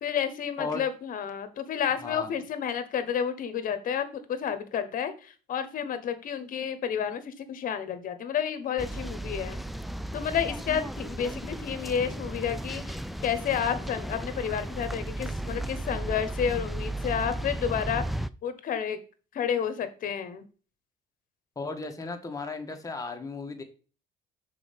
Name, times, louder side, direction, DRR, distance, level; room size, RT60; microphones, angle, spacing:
voice 1, 0.0-9.6 10.1-18.0 18.4-19.0 19.3-20.4, left 8 dB, 55° left, 11 dB, 1.1 m, -30 dB
sound 1, 8.8-18.3, right 1 dB, ahead, 0.3 m, -35 dB
voice 2, 21.5-23.6, left 3 dB, 20° left, 4 dB, 1.5 m, -35 dB
6.1 x 4.4 x 5.3 m, 0.37 s
cardioid pair, 110°, 17 cm